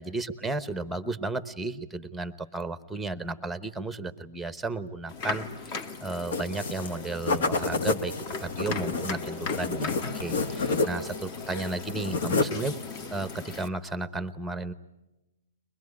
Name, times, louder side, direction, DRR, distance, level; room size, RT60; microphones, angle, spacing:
voice 1, 0.0-12.7 13.1-14.7, right 3 dB, 5° right, 13 dB, 0.9 m, -34 dB
sound 1, 5.1-13.7, left 4 dB, 35° left, 1.6 m, -38 dB
sound 2, 6.3-6.9 7.2-11.2 11.5-12.7, left 3 dB, 65° left, 1.6 m, -29 dB
23.0 x 20.5 x 9.7 m, 1.0 s
hypercardioid pair, 145°, 0 cm